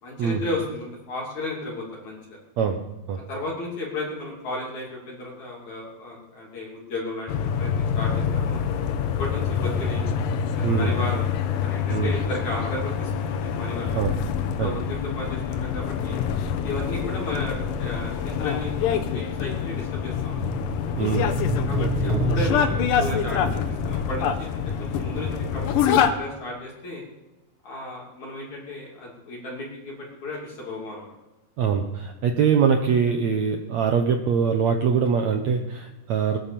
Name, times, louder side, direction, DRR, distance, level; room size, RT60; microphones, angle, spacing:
voice 1, 0.0-2.4 3.3-8.6 9.2-10.0 10.5-11.3 11.6-14.0 14.4-16.2 16.6-20.4 21.7-27.0 27.6-29.9 30.2-31.1, left 2 dB, 50° left, -4 dB, 4.0 m, -34 dB
sound 1, 7.3-26.1, left 7 dB, 70° left, 2.3 m, -26 dB
sound 2, 20.4-24.8 25.1-25.2, right 1 dB, 35° right, 2.8 m, -29 dB
voice 2, 21.0-21.3 31.6-36.4, right 6 dB, 80° right, 5 dB, 1.6 m, -23 dB
21.0 x 9.5 x 7.0 m, 1.1 s
omnidirectional pair, 4.7 m